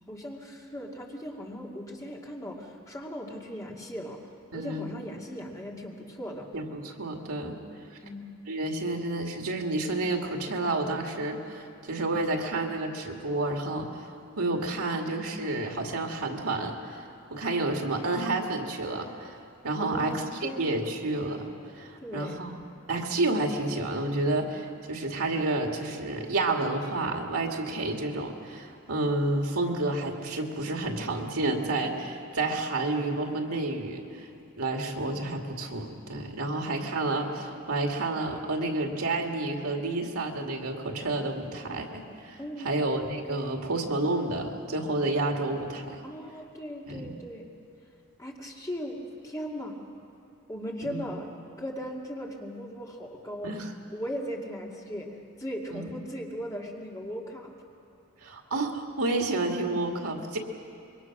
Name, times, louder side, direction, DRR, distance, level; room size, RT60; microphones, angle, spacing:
voice 1, 0.1-4.2 4.5-6.5 8.0-8.2 19.8-20.9 22.0-22.4 42.4-42.7 46.0-47.4 48.2-49.8 50.5-51.3 51.6-53.5 53.9-55.1 55.4-57.5, equal, 15° left, -2 dB, 2.3 m, -38 dB
voice 2, 4.5-5.0 6.5-7.6 8.5-14.1 14.4-17.0 17.3-19.4 19.6-21.5 21.7-22.6 22.9-34.3 34.6-46.0 46.9-47.2 50.8-51.1 53.4-53.7 55.7-55.9 58.2-60.4, right 2 dB, 80° right, 2 dB, 2.2 m, -30 dB
26.0 x 23.0 x 6.1 m, 2.5 s
head